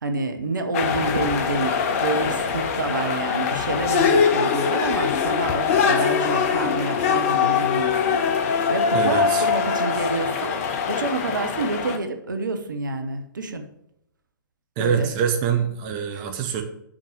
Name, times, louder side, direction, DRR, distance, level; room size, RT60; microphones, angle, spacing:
voice 1, 0.0-13.6 14.8-15.1 16.1-16.2, right 3 dB, 65° right, 7 dB, 1.2 m, -28 dB
sound 1, 0.7-12.0, left 6 dB, 40° left, 1.0 m, -22 dB
voice 2, 8.9-9.5 14.8-16.6, right 7 dB, 30° right, 5 dB, 1.1 m, -24 dB
6.6 x 6.2 x 6.2 m, 0.79 s
figure-of-eight pair, 120°, 11 cm